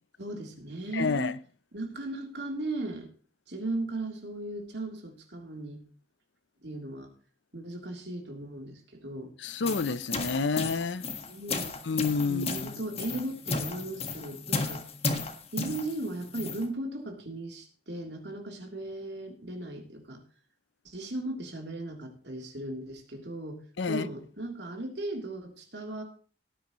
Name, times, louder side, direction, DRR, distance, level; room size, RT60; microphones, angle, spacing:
voice 1, 0.2-1.3 1.7-3.1 3.5-5.8 6.6-7.1 7.5-9.3 11.3-11.8 12.3-14.8 15.5-20.2 20.8-23.6 23.9-26.0, right 2 dB, 70° right, 3.3 m, -37 dB
voice 2, 0.9-1.3 9.4-11.1 11.9-12.7 23.8-24.1, left 4 dB, 85° left, 0.6 m, -29 dB
sound 1, 9.4-16.7, left 4 dB, 35° left, 1.6 m, -34 dB
18.0 x 9.5 x 3.1 m
head